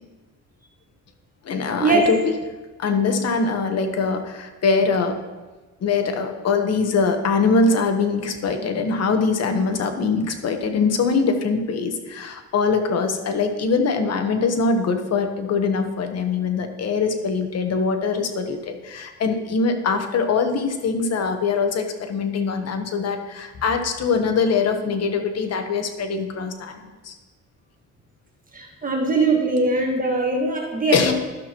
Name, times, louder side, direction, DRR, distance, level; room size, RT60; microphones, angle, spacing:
voice 1, 1.4-2.3 2.8-5.2 5.8-26.8 27.0-27.1 30.9-31.1, left 4 dB, 55° left, 6 dB, 1.1 m, -22 dB
voice 2, 28.5-31.1, right 3 dB, 30° right, 0 dB, 1.5 m, -21 dB
12.5 x 6.0 x 3.0 m, 1.2 s
cardioid pair, 90°, 30 cm